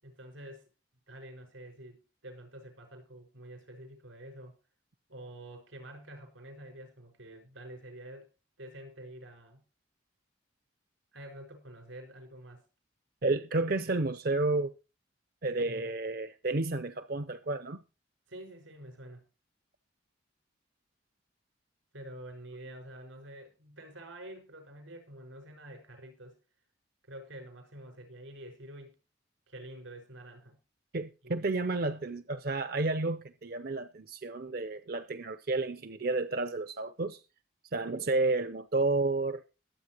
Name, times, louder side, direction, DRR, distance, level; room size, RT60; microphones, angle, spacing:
voice 1, 0.0-0.6 1.1-4.6 5.1-8.3 8.6-9.6 11.1-12.6 18.3-19.2 21.9-26.4 27.1-29.0 29.5-30.6 31.2-31.5, right 1 dB, 85° right, 5.4 m, -48 dB
voice 2, 13.2-14.7 15.4-17.8 30.9-37.2 37.7-39.4, right 3 dB, 50° right, 0.6 m, -31 dB
22.0 x 8.4 x 3.0 m
head